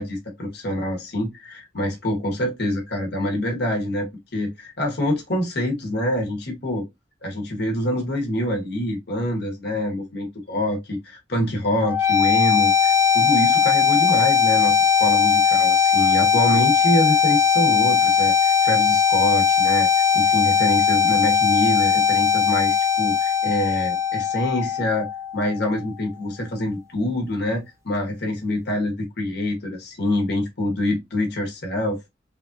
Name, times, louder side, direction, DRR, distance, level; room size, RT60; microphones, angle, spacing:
voice 1, 0.0-6.8 7.2-11.0 11.3-19.9 20.1-32.1, left 1 dB, 65° left, 1.0 m, -25 dB
sound 1, 11.8-25.8, left 7 dB, 15° right, 0.4 m, -19 dB
3.2 x 2.5 x 2.4 m
head